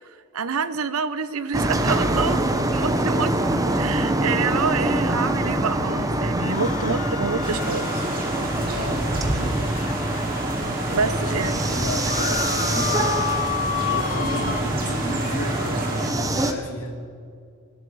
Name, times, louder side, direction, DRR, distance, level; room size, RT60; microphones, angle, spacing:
voice 1, 0.3-2.4 2.7-3.3 3.7-8.1 10.9-11.6, right 5 dB, 75° right, 14 dB, 0.7 m, -27 dB
sound 1, 1.5-16.5, right 1 dB, 15° right, 0.9 m, -24 dB
sound 2, 6.3-10.8 11.3-11.4 11.6-14.6, left 8 dB, 35° left, 0.7 m, -31 dB
sound 3, 7.4-16.1, right 2 dB, 40° right, 2.4 m, -33 dB
voice 2, 8.4-9.5 10.8-17.0, left 1 dB, 90° left, 4 dB, 1.8 m, -33 dB
20.5 x 12.0 x 4.8 m, 2.3 s
head